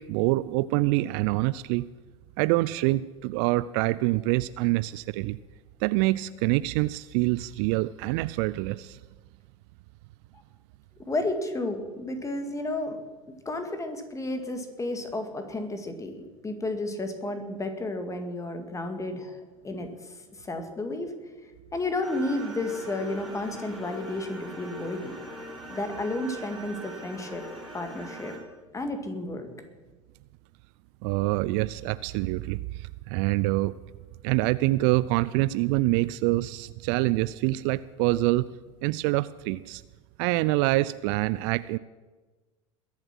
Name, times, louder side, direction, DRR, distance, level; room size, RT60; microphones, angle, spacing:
voice 1, 0.0-1.9 2.4-5.4 5.8-9.0 31.0-33.8 34.2-38.5 38.8-39.8 40.2-41.8, right 19 dB, 55° right, 17 dB, 0.4 m, -26 dB
voice 2, 11.0-13.0 13.5-19.4 19.6-21.1 21.7-25.1 25.7-27.4 27.7-28.4 28.7-29.6, left 2 dB, 20° left, 6 dB, 2.2 m, -32 dB
sound 1, 22.0-28.4, equal, ahead, 4.4 m, -41 dB
21.5 x 7.4 x 6.1 m, 1.3 s
figure-of-eight pair, 75°, 17 cm